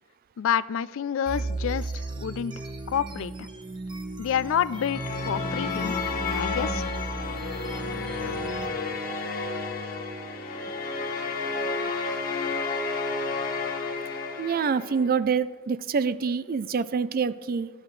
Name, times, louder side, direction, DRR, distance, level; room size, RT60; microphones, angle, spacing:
voice 1, 0.4-2.5 2.9-3.5 4.2-5.9 6.3-6.9, left 8 dB, 65° left, 17 dB, 0.3 m, -28 dB
sound 1, 1.3-8.7, right 2 dB, 25° right, 0.9 m, -35 dB
sound 2, 4.7-15.1, left 4 dB, 45° left, 1.3 m, -31 dB
voice 2, 14.4-17.7, right 5 dB, 45° right, 15 dB, 0.4 m, -26 dB
15.5 x 10.5 x 3.2 m, 1.4 s
head